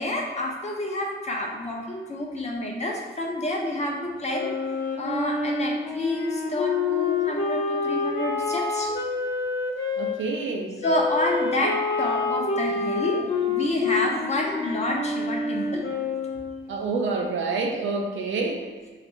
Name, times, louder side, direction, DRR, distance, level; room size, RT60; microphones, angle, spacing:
voice 1, 0.0-4.5 5.0-8.9 10.8-15.9, left 1 dB, 35° left, 0 dB, 0.6 m, -28 dB
Wind instrument woodwind instrument, 4.2-10.2 10.8-16.7, left 4 dB, 75° left, 0.5 m, -28 dB
voice 2, 10.0-10.8 16.7-18.7, right 3 dB, 85° right, 2 dB, 0.5 m, -27 dB
3.1 x 2.4 x 3.1 m, 1.4 s
cardioid pair, 75°, 20 cm